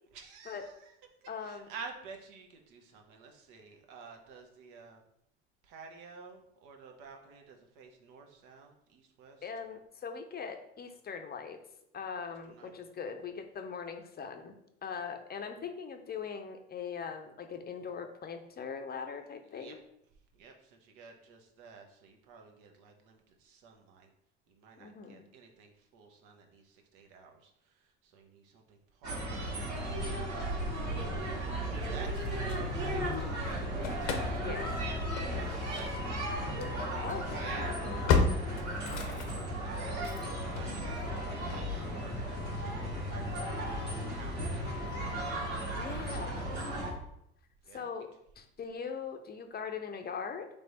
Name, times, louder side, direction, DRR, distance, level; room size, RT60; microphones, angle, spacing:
voice 1, 0.1-0.9 1.4-5.0 5.6-9.4 12.4-12.7 19.3-19.7 20.3-24.1 24.5-30.8 31.9-33.6 34.0-35.0 35.3-36.3 36.9-37.8 38.9-40.0 40.4-45.5 47.7-47.9, right 5 dB, 65° right, 2 dB, 1.0 m, -52 dB
voice 2, 1.3-1.7 9.4-11.6 11.9-14.5 14.8-19.8 24.8-25.2 34.4-34.7 37.0-37.5 40.7-41.0 45.7-46.4 47.7-48.1 48.4-50.5, left 6 dB, 30° left, 6 dB, 0.6 m, -41 dB
sound 1, 29.0-46.9, right 1 dB, 80° right, 1.5 m, -35 dB
Engine starting / Slam, 31.8-33.2 33.5-46.5, left 5 dB, 65° left, 0.7 m, -37 dB
3.4 x 3.3 x 4.0 m, 0.76 s
hypercardioid pair, 70°, 34 cm